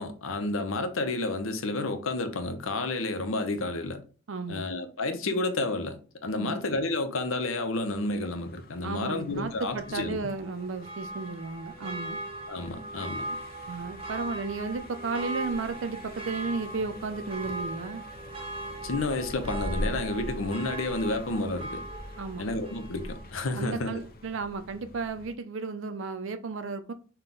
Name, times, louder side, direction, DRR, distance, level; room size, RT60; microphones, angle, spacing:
voice 1, 0.0-4.0 4.5-10.2 12.5-13.3 18.8-21.8 22.4-23.9, left 2 dB, 90° left, 0.7 m, -30 dB
voice 2, 4.3-4.7 6.3-6.6 8.8-12.2 13.3-13.4 13.7-18.0 22.2-22.5 23.5-26.9, right 4 dB, 70° right, 0.5 m, -34 dB
Car passing by, 7.9-25.3, left 1 dB, 50° left, 0.5 m, -43 dB
Church bell, 9.7-23.4 23.7-23.8, right 2 dB, 25° right, 0.7 m, -40 dB
5.6 x 2.3 x 3.8 m
head